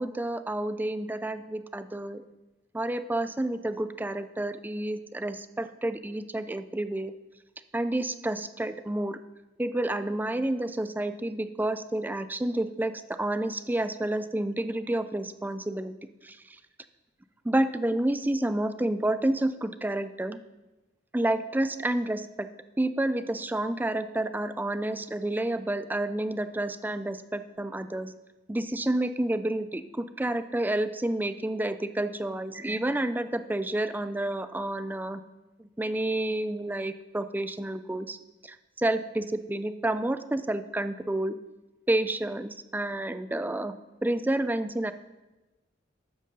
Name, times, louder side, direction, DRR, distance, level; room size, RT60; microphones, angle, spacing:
voice 1, 0.0-2.2 2.7-7.1 7.7-9.2 9.6-12.9 13.2-15.9 16.2-16.4 17.4-20.4 21.1-22.5 22.8-28.1 28.5-35.2 35.6-38.2 38.4-41.4 41.9-43.7 44.0-44.9, right 1 dB, 10° right, 11 dB, 0.4 m, -29 dB
13.0 x 9.3 x 3.8 m, 1.1 s
head